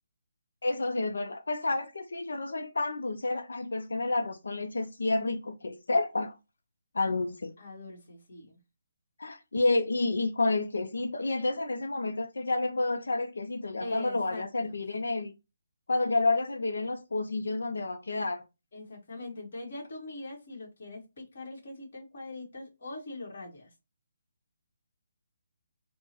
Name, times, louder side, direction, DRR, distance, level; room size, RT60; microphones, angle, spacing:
voice 1, 0.6-6.4 6.9-7.5 9.2-15.3 15.9-18.4, left 2 dB, 85° left, 0.5 m, -30 dB
voice 2, 7.6-8.6 13.8-14.8 18.7-23.7, left 2 dB, 60° left, 1.5 m, -42 dB
4.4 x 2.1 x 2.9 m
hypercardioid pair, 160°, 0 cm